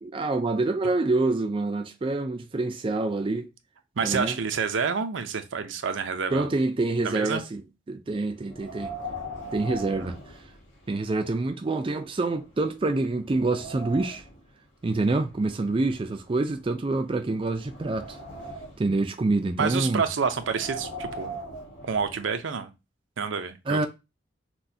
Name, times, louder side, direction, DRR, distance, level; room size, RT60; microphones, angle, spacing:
voice 1, 0.0-3.5 4.0-4.4 6.3-7.6 7.9-8.9 9.5-10.2 10.9-14.2 14.8-18.2 18.8-20.0 23.7-23.9, right 2 dB, 30° right, 0.4 m, -26 dB
voice 2, 4.0-6.5 7.0-7.4 10.0-10.1 19.6-21.4 21.8-22.7 23.2-23.9, right 5 dB, 80° right, 0.6 m, -28 dB
Wind, 8.4-11.1 11.4-11.5 12.2-12.3 12.8-14.4 15.2-16.8 17.3-19.0 20.2-22.3, equal, 85° left, 1.7 m, -40 dB
5.9 x 2.2 x 2.7 m
head